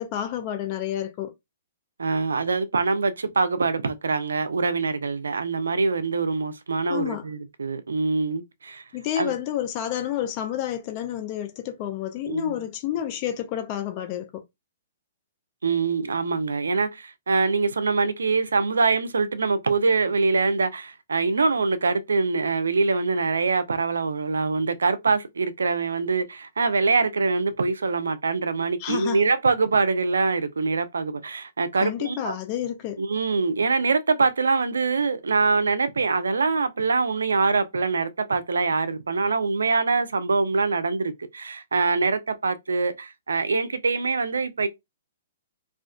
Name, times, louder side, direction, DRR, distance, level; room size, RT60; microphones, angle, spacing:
voice 1, 0.0-1.3 6.9-7.3 8.9-14.4 28.8-29.2 31.8-33.0, left 11 dB, 35° left, 0.4 m, -30 dB
voice 2, 2.0-8.8 9.2-9.3 12.2-12.7 15.6-32.4 33.0-44.7, right 4 dB, 90° right, 0.4 m, -24 dB
2.4 x 2.3 x 2.3 m
hypercardioid pair, 135°, 0 cm